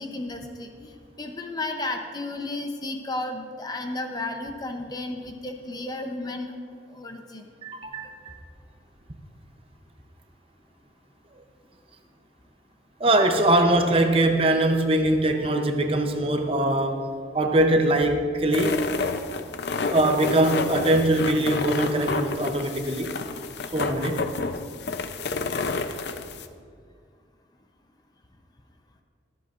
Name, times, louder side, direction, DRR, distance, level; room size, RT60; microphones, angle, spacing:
voice 1, 0.0-6.5 6.9-7.5, left 2 dB, 20° left, 4 dB, 0.7 m, -33 dB
voice 2, 7.6-8.4 11.3-11.4 13.0-17.1 17.3-18.8 19.9-23.1 23.7-24.2, right 1 dB, 30° right, 5 dB, 0.7 m, -22 dB
sound 1, 18.5-26.5, left 4 dB, 60° left, 0.5 m, -30 dB
23.0 x 7.9 x 2.5 m, 2.1 s
head